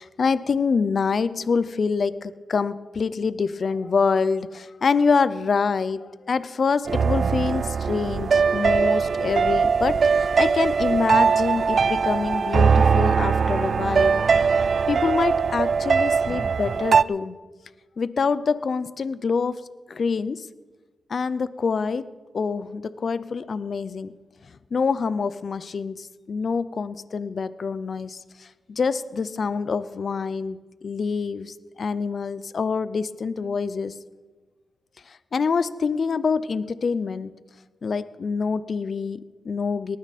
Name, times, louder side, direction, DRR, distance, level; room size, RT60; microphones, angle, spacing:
voice 1, 0.0-14.2 14.9-17.3 18.0-19.6 19.9-20.5 21.1-22.1 22.3-24.1 24.7-33.9 35.1-37.4 37.8-40.0, left 5 dB, 55° left, 15 dB, 0.6 m, -26 dB
sound 1, 6.9-17.0, right 5 dB, 55° right, 0.3 m, -21 dB
19.0 x 13.5 x 4.2 m, 1.2 s
cardioid pair, 85°, 0 cm